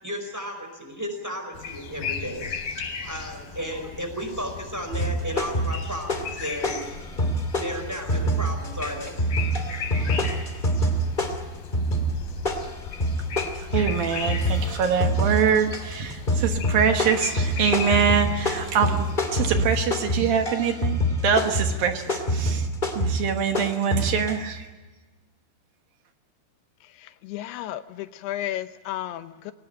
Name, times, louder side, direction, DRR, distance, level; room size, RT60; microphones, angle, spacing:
voice 1, 0.0-6.8 7.6-9.1, equal, 5° right, 5 dB, 4.5 m, -34 dB
sound 1, 1.5-19.3, left 6 dB, 65° left, 4.0 m, -37 dB
sound 2, 4.9-6.4 6.6-24.3, equal, 20° left, 1.5 m, -26 dB
voice 2, 13.7-19.1 19.3-22.7 23.0-24.7, right 7 dB, 65° right, 5 dB, 2.9 m, -24 dB
voice 3, 27.0-29.5, left 13 dB, 80° left, 11 dB, 2.8 m, -33 dB
22.5 x 18.5 x 8.9 m, 1.3 s
omnidirectional pair, 4.7 m